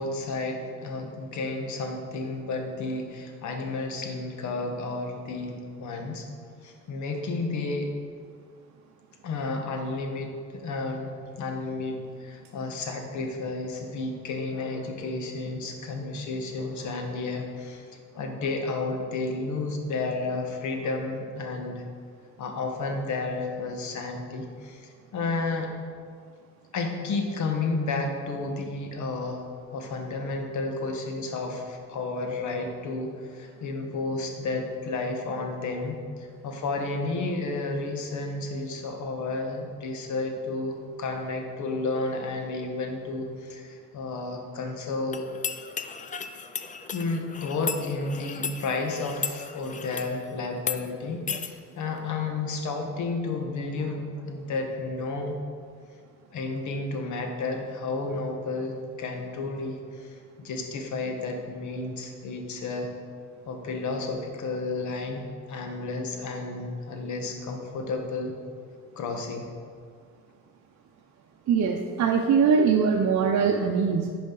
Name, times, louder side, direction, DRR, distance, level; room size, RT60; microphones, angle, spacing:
voice 1, 0.0-6.3 6.6-7.9 9.2-17.9 18.1-21.8 22.4-25.7 26.7-29.4 29.7-45.2 46.9-55.4 56.3-62.9 63.5-65.2 65.5-68.3 69.0-69.5, left 3 dB, 70° left, 3 dB, 1.2 m, -32 dB
sound 1, 45.1-50.2 50.6-50.8 51.3-51.5, left 6 dB, 25° left, 0.4 m, -35 dB
voice 2, 71.5-74.1, right 6 dB, 65° right, 1 dB, 0.7 m, -22 dB
11.0 x 5.0 x 3.9 m, 2.1 s
cardioid pair, 90°, 30 cm